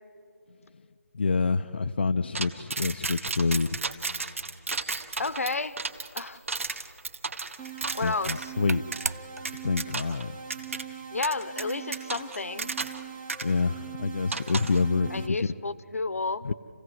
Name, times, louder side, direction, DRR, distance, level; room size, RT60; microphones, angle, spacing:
voice 1, 1.1-3.8 8.0-8.8 9.6-10.4 13.4-15.5 16.4-16.5, left 4 dB, 45° left, 8 dB, 0.4 m, -27 dB
sound 1, 2.3-8.5 8.9-9.1 9.4-10.2 10.5-10.8 11.2-13.0 13.3-13.4 14.3-14.8, right 4 dB, 60° right, 1.4 m, -33 dB
sound 2, 5.1-9.8, right 3 dB, 80° right, 0.7 m, -41 dB
voice 2, 5.2-5.8 6.1-6.4 7.9-8.5 11.1-12.7 15.1-16.5, left 3 dB, 65° left, 15 dB, 0.9 m, -31 dB
sound 3, 7.6-15.3, right 7 dB, 10° right, 0.7 m, -42 dB
28.0 x 16.5 x 7.7 m, 2.5 s
figure-of-eight pair, 170°, 8 cm